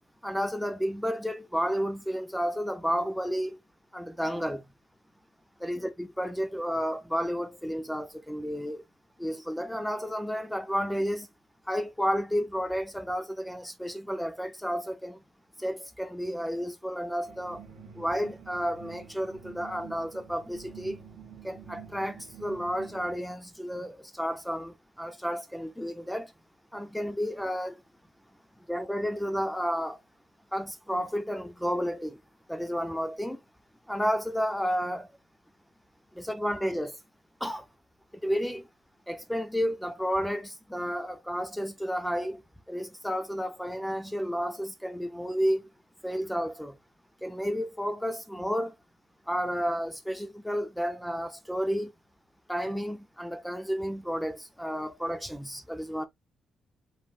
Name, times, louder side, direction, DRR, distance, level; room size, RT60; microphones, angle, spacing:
voice 1, 0.2-3.6 3.9-4.6 5.6-8.8 9.2-11.3 11.7-15.2 15.6-17.6 17.9-21.0 21.4-26.3 26.7-27.8 28.7-30.0 30.5-32.2 32.5-33.4 33.9-35.1 36.1-37.0 37.4-37.6 38.2-38.7 39.1-42.4 42.7-45.6 46.0-46.8 47.2-48.7 49.3-51.9 52.5-56.1, equal, 5° left, 0.9 m, -31 dB
sound 1, 17.2-23.2, right 7 dB, 75° right, 1.7 m, -48 dB
5.2 x 3.4 x 2.5 m
cardioid pair, 90°, 0 cm